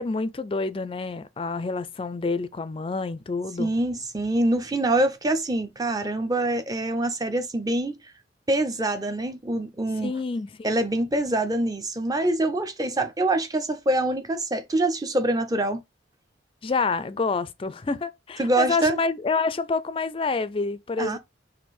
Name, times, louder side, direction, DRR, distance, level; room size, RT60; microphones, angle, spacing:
voice 1, 0.0-3.7 10.0-10.7 16.6-21.2, left 4 dB, 30° left, 0.3 m, -28 dB
voice 2, 3.6-7.9 8.5-10.1 10.6-15.8 18.4-19.0 21.0-21.2, right 1 dB, 20° right, 0.6 m, -25 dB
4.4 x 2.6 x 4.6 m
head